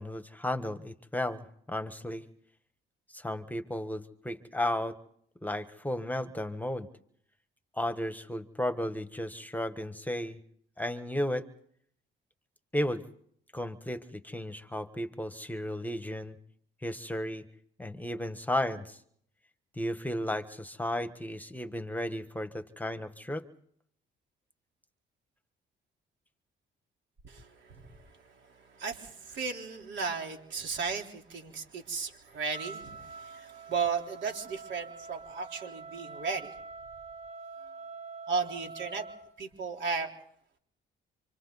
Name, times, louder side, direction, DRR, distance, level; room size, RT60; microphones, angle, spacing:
voice 1, 0.0-2.2 3.1-5.0 5.4-6.9 7.7-10.4 10.8-11.5 12.7-13.0 13.5-16.4 16.8-17.5 17.8-19.0 19.8-23.4, left 1 dB, 10° left, 10 dB, 1.3 m, -34 dB
voice 2, 28.8-36.5 38.3-39.1 39.4-40.1, right 5 dB, 70° right, 2 dB, 4.1 m, -35 dB
Wind instrument woodwind instrument, 32.5-39.3, right 4 dB, 35° right, 6.5 m, -45 dB
27.5 x 26.0 x 4.1 m, 0.65 s
cardioid pair, 90°, 20 cm